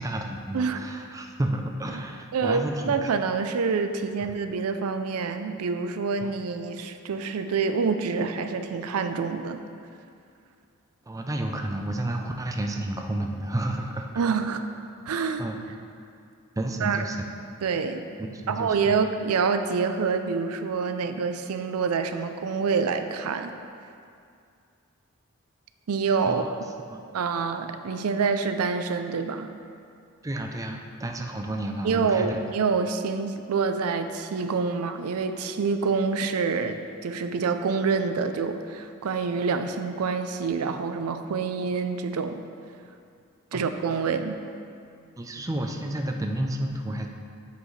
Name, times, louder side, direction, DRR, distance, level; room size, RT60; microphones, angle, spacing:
voice 1, 0.0-3.1 6.2-6.3 11.1-14.1 15.4-15.6 16.6-17.3 18.2-18.9 26.3-26.5 26.9-27.0 30.2-32.4 43.5-43.6 45.2-47.1, right 1 dB, 15° right, 3 dB, 0.4 m, -31 dB
voice 2, 2.3-9.6 14.2-14.6 15.1-15.4 16.8-17.0 17.6-18.0 18.5-23.5 25.9-26.4 27.1-29.5 31.8-42.4 43.5-44.4, right 5 dB, 85° right, 8 dB, 0.4 m, -27 dB
8.0 x 7.7 x 3.2 m, 2.4 s
head